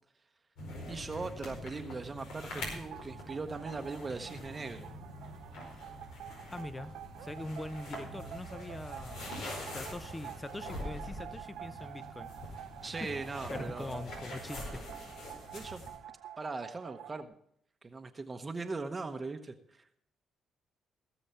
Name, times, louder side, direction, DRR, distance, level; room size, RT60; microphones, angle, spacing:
sound 1, 0.6-16.0, left 1 dB, 85° left, 4.7 m, -44 dB
voice 1, 0.9-4.9 12.8-14.0 15.5-15.9 16.4-17.3 17.8-19.9, right 3 dB, 30° right, 7 dB, 1.0 m, -40 dB
sound 2, 2.6-17.2, right 11 dB, 85° right, 0.5 m, -48 dB
voice 2, 6.5-6.9 7.2-9.3 9.6-12.3 13.0-13.1 13.5-14.9, left 1 dB, 15° left, 14 dB, 0.8 m, -42 dB
17.0 x 7.1 x 5.6 m, 0.71 s
cardioid pair, 90°, 0 cm